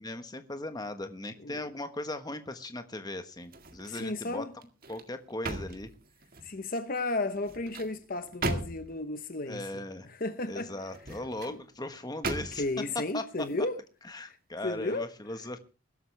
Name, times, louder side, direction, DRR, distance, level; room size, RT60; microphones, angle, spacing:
voice 1, 0.0-4.5 4.9-5.9 9.5-10.1 10.5-12.6 13.1-13.7 14.0-15.6, left 2 dB, 20° left, 1.3 m, -38 dB
sound 1, 3.4-4.2 4.6-6.6 7.3-9.1 10.8-11.6 12.2-12.8 13.3-13.5, right 2 dB, 45° right, 1.9 m, -38 dB
voice 2, 3.9-4.5 6.4-9.7 10.0-10.7 11.5-11.6 12.6-13.7 14.2-14.4 14.6-15.1, left 2 dB, 45° left, 0.9 m, -33 dB
21.5 x 12.5 x 3.4 m
head